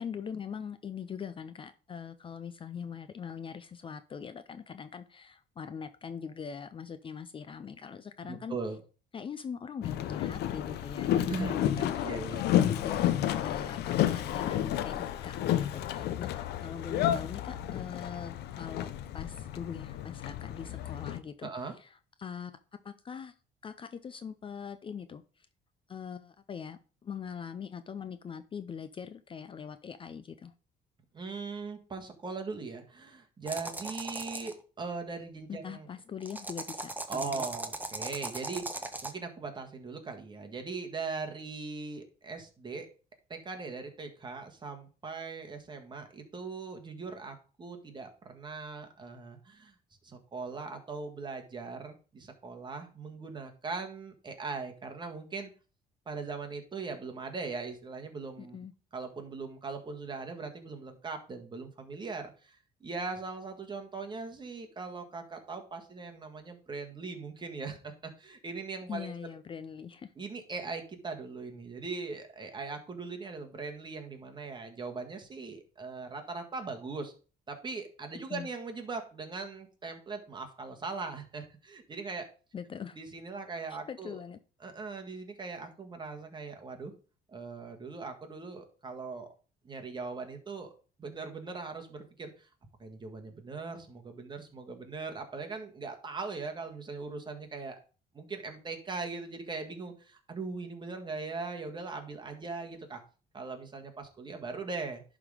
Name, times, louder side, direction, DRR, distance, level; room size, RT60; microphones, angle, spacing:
voice 1, 0.0-8.6 9.1-12.2 12.5-21.5 21.8-22.6 22.8-23.3 23.6-25.5 25.9-30.5 35.5-37.5 58.4-58.7 68.9-70.1 78.3-78.5 82.5-83.0 83.7-84.4, left 7 dB, 30° left, 11 dB, 0.5 m, -42 dB
voice 2, 8.2-8.8 11.3-12.5 21.4-21.7 31.1-35.9 37.1-42.9 43.3-49.7 50.0-55.5 56.0-58.6 58.9-69.1 70.2-77.1 77.5-82.3 82.9-84.2 84.6-86.9 87.3-89.3 89.6-90.7 91.0-92.5 92.8-97.8 98.1-103.0 103.3-105.0, right 4 dB, 25° right, 4 dB, 1.7 m, -40 dB
Boat Water vehicle, 9.8-21.2, left 12 dB, 75° left, 0.7 m, -31 dB
sound 1, 33.5-34.5 36.2-39.1, right 2 dB, 10° right, 1.0 m, -38 dB
11.0 x 3.8 x 4.9 m, 0.37 s
cardioid pair, 110°, 17 cm